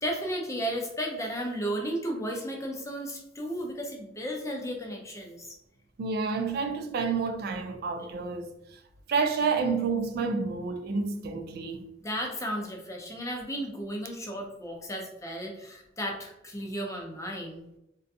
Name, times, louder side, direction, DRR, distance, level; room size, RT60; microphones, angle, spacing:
voice 1, 0.0-5.5 12.0-17.6, equal, 15° left, 0.4 m, -34 dB
voice 2, 6.0-8.5 9.1-11.8, right 4 dB, 55° right, 0.3 m, -29 dB
2.5 x 2.2 x 2.6 m
head